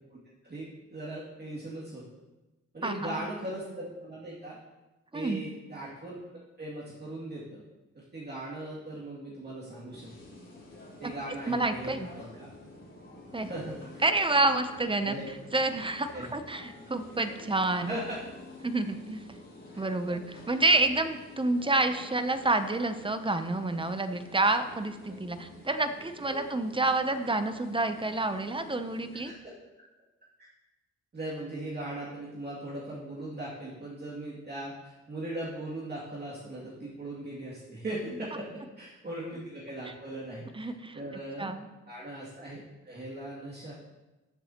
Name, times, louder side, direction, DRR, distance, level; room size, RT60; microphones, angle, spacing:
voice 1, 0.4-2.1 2.7-4.6 5.1-6.2 6.6-7.6 7.9-10.4 11.0-12.5 13.4-14.0 15.1-15.3 16.1-16.3 17.9-18.2 19.7-20.2 25.1-25.2 26.3-26.4 29.2-29.5 30.4-30.5 31.1-41.6 41.9-43.7, right 1 dB, 35° right, -7 dB, 2.4 m, -39 dB
voice 2, 2.8-3.3 5.1-5.4 11.0-11.1 11.4-12.1 13.3-13.5 14.0-15.2 15.5-17.9 18.6-19.2 19.8-29.3 40.5-41.0 41.4-41.7, right 2 dB, 15° right, 9 dB, 0.6 m, -28 dB
sound 1, 9.8-29.3, left 2 dB, 40° left, 3.3 m, -49 dB
14.0 x 7.0 x 2.9 m, 1.1 s
cardioid pair, 100°, 29 cm